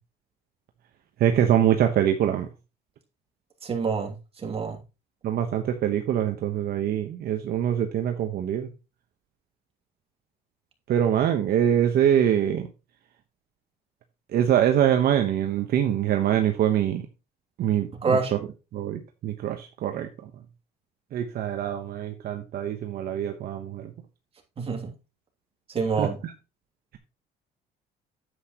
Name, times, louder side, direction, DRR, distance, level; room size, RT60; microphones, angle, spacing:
voice 1, 1.2-2.5 5.2-8.7 10.9-12.7 14.3-17.0 17.6-18.2 18.7-20.1 21.1-23.9 26.0-26.1, right 10 dB, 65° right, 1.2 m, -24 dB
voice 2, 3.6-4.8 18.0-18.3 24.6-24.9 25.7-26.2, right 4 dB, 35° right, 2.7 m, -27 dB
9.5 x 8.3 x 3.1 m
cardioid pair, 110°, 17 cm